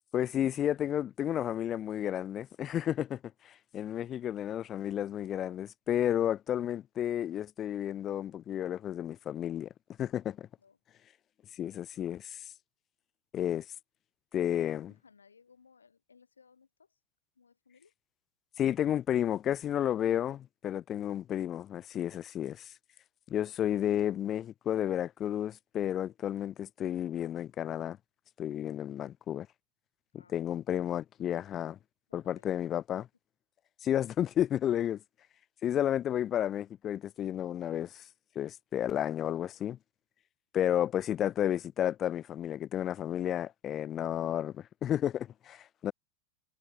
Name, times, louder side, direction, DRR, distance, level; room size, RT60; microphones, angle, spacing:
voice 1, 0.1-3.2 3.4-9.7 10.0-10.5 11.6-12.4 13.3-13.6 14.3-14.9 18.6-22.6 23.3-28.0 28.4-29.5 30.3-31.8 32.1-33.1 33.8-35.0 35.6-38.0 38.3-39.8 40.5-45.9, left 10 dB, 30° left, 1.0 m, -32 dB
voice 2, 14.5-17.0 17.3-17.9 30.1-30.4 32.1-32.5, left 5 dB, 75° left, 6.4 m, -62 dB
figure-of-eight pair, 90°, 0 cm